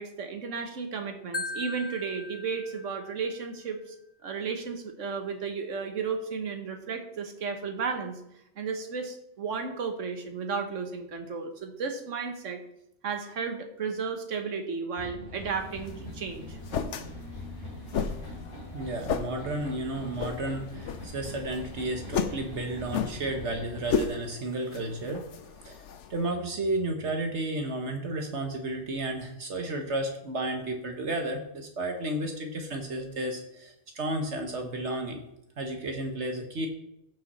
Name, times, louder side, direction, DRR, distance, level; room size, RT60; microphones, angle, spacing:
voice 1, 0.0-3.9 4.2-8.2 8.6-12.6 13.0-16.6, right 5 dB, 90° right, 6 dB, 1.6 m, -34 dB
Marimba xylophone, 1.3-3.4, left 2 dB, 25° left, 0.8 m, -38 dB
sound 1, 15.0-24.1, left 1 dB, 50° left, 3.6 m, -42 dB
sound 2, 15.6-26.3, left 6 dB, 75° left, 1.1 m, -35 dB
voice 2, 18.7-25.2 25.6-25.8 26.1-35.2 35.6-36.7, right 2 dB, 65° right, 4 dB, 1.4 m, -32 dB
15.5 x 5.7 x 4.2 m, 0.80 s
omnidirectional pair, 1.3 m